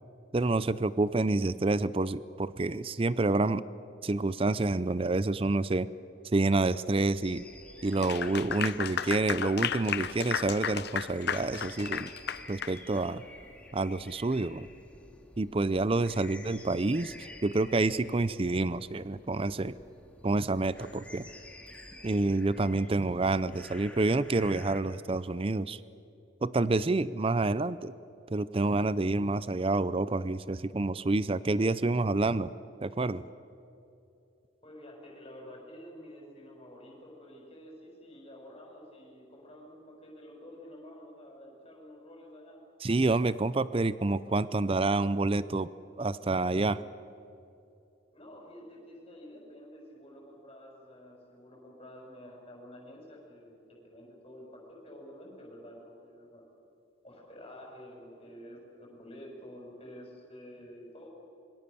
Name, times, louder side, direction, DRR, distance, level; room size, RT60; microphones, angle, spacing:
voice 1, 0.3-3.6 4.0-5.9 6.3-7.4 7.8-12.1 12.5-13.2 13.7-14.7 15.4-19.7 20.2-21.3 22.0-25.8 26.4-27.9 28.3-32.5 32.8-33.2 42.8-45.7 46.0-46.8, right 2 dB, 25° right, 16 dB, 0.5 m, -28 dB
sound 1, 7.2-24.8, left 1 dB, 5° left, 2.1 m, -51 dB
Clapping / Applause, 7.9-12.8, left 8 dB, 55° left, 0.8 m, -33 dB
voice 2, 34.6-42.6 48.1-56.4 57.0-61.1, equal, 30° left, 0 dB, 6.6 m, -49 dB
27.0 x 23.5 x 6.9 m, 2.7 s
head